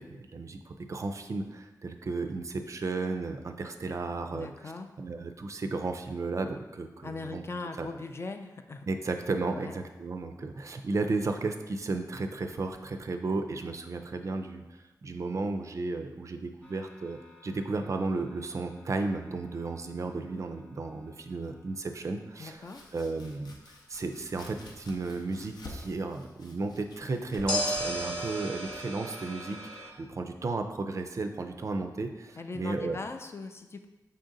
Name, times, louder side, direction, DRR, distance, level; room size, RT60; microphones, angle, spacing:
voice 1, 0.0-4.5 5.0-7.4 7.8-7.9 8.9-22.6 22.9-23.6 23.9-33.0, right 3 dB, 45° right, 6 dB, 0.4 m, -34 dB
voice 2, 4.3-4.9 7.0-8.9 9.5-9.8 22.4-22.8 32.4-33.9, left 3 dB, 40° left, 6 dB, 0.4 m, -40 dB
sound 1, 16.6-19.7 27.5-29.9, equal, 10° left, 0.9 m, -36 dB
Domestic sounds home sounds, 22.3-30.1, left 2 dB, 80° left, 0.6 m, -50 dB
5.4 x 2.6 x 3.8 m, 1.1 s
wide cardioid pair, 100°, 7 cm